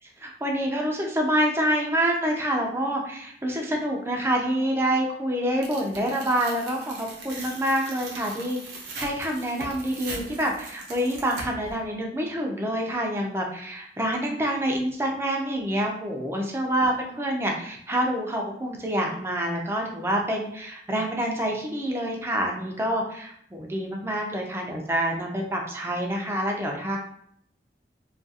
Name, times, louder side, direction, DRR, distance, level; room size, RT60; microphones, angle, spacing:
voice 1, 0.2-8.6 9.0-27.0, right 1 dB, 15° right, 0 dB, 0.4 m, -27 dB
Tearing, 5.6-11.7, right 3 dB, 65° right, 0.6 m, -40 dB
2.3 x 2.3 x 2.7 m, 0.68 s
head